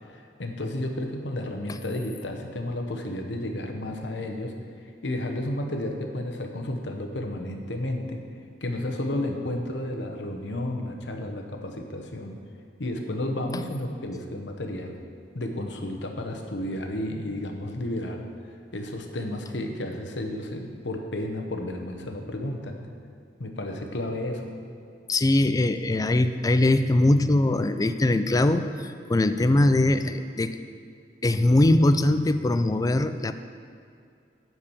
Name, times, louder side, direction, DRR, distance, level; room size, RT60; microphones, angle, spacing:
voice 1, 0.4-4.5 5.0-8.2 8.6-12.4 12.8-15.0 15.3-18.2 18.7-22.8 23.4-24.5, left 1 dB, 80° left, 3 dB, 1.0 m, -32 dB
voice 2, 25.1-30.6 31.2-33.3, left 2 dB, 20° left, 10 dB, 0.3 m, -21 dB
9.8 x 4.7 x 7.2 m, 2.3 s
head